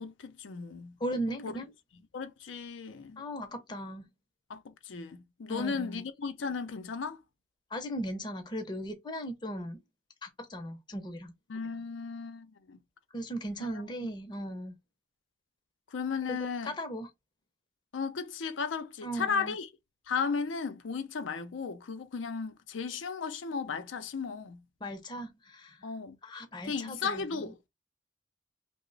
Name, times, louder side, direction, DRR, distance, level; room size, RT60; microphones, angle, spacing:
voice 1, 0.0-1.0 1.3-1.5 2.1-3.2 4.5-7.2 11.5-12.8 13.6-13.7 14.0-14.1 15.9-16.7 17.9-19.7 20.1-24.6 25.8-26.2 26.7-27.7, left 5 dB, 90° left, 0.5 m, -35 dB
voice 2, 1.0-1.6 3.2-4.1 5.5-6.0 7.7-9.8 10.2-11.3 13.1-14.8 16.3-17.1 19.0-19.6 24.8-25.8 26.2-27.5, equal, 25° left, 0.6 m, -37 dB
2.9 x 2.0 x 3.8 m
head